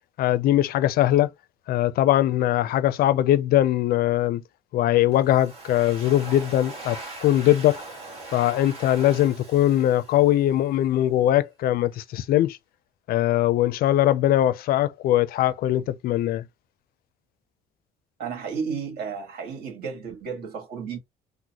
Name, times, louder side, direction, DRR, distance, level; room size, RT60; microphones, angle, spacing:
voice 1, 0.2-1.3 1.7-4.4 4.7-7.8 8.3-12.6 13.1-16.4, left 13 dB, 65° left, 0.4 m, -21 dB
Domestic sounds home sounds, 5.1-10.7, right 2 dB, 35° right, 1.7 m, -41 dB
voice 2, 18.2-21.0, right 6 dB, 70° right, 1.6 m, -33 dB
3.9 x 2.1 x 2.8 m
cardioid pair, 110°, 17 cm